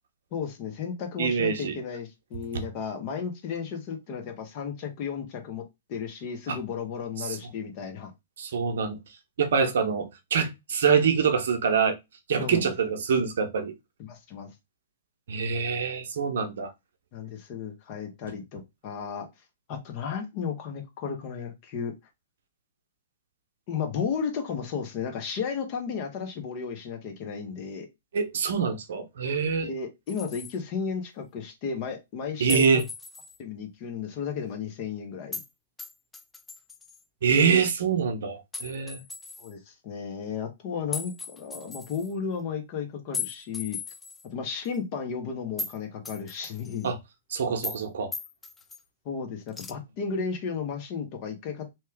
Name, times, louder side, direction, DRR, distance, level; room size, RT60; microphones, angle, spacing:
voice 1, 0.3-5.6 5.9-8.1 12.4-12.7 14.0-14.5 17.1-19.3 19.7-21.9 23.7-27.9 29.6-32.8 33.4-35.4 37.3-37.7 39.4-43.8 44.3-46.9 49.0-51.7, left 6 dB, 45° left, 1.0 m, -34 dB
voice 2, 1.2-1.8 6.5-6.6 7.2-7.4 8.4-9.0 9.4-12.0 12.3-13.7 15.3-16.7 28.1-29.7 32.4-32.8 37.2-39.0 46.8-47.0 47.3-48.1, right 6 dB, 70° right, 0.7 m, -25 dB
sound 1, 30.1-30.6 32.5-33.4 35.3-35.5 35.8-37.0 38.5-39.5 40.9-42.1 43.1-44.3 44.6-44.8 45.6-45.8 46.0-46.9 47.6-47.8 48.1-48.8 49.5-49.7, left 4 dB, 10° left, 0.3 m, -37 dB
2.9 x 2.3 x 3.4 m
hypercardioid pair, 125°, 0 cm